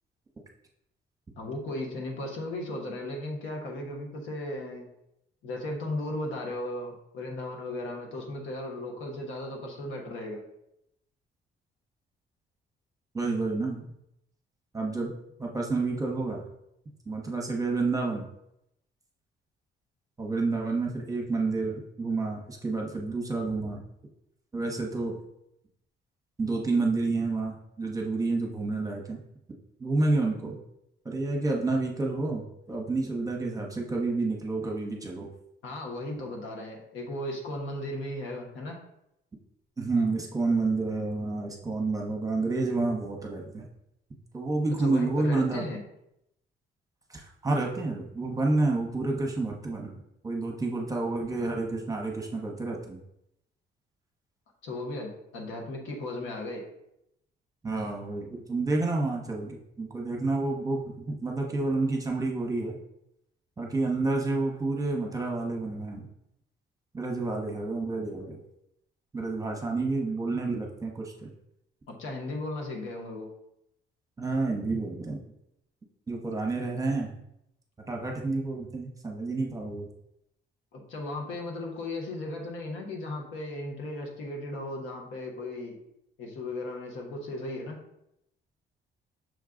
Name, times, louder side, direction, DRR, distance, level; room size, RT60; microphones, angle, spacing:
voice 1, 1.4-4.9 5.4-10.4 35.6-38.8 44.8-45.8 54.6-56.6 72.0-73.3 80.7-85.8 86.2-87.8, left 1 dB, 85° left, 1 dB, 1.1 m, -36 dB
voice 2, 13.1-13.8 14.7-15.1 15.4-16.4 17.1-18.3 20.2-23.8 24.5-25.1 26.4-29.2 29.8-30.6 31.0-35.3 39.8-43.7 44.3-45.6 47.1-49.9 50.2-53.0 57.6-62.8 63.6-66.1 66.9-68.4 69.1-71.3 74.2-75.2 76.1-77.1 77.9-79.9, right 3 dB, 15° right, 0 dB, 0.9 m, -29 dB
6.3 x 2.3 x 3.7 m, 0.80 s
cardioid pair, 90°, 20 cm